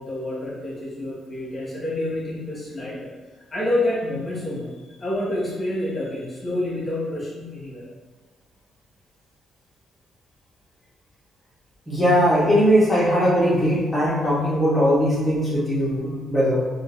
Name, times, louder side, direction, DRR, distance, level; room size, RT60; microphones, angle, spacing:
voice 1, 0.0-3.1 3.5-7.9, left 1 dB, 35° left, -7 dB, 1.3 m, -28 dB
voice 2, 11.9-16.6, equal, 5° left, -9 dB, 1.2 m, -19 dB
3.7 x 2.6 x 2.6 m, 1.3 s
cardioid pair, 90°, 0 cm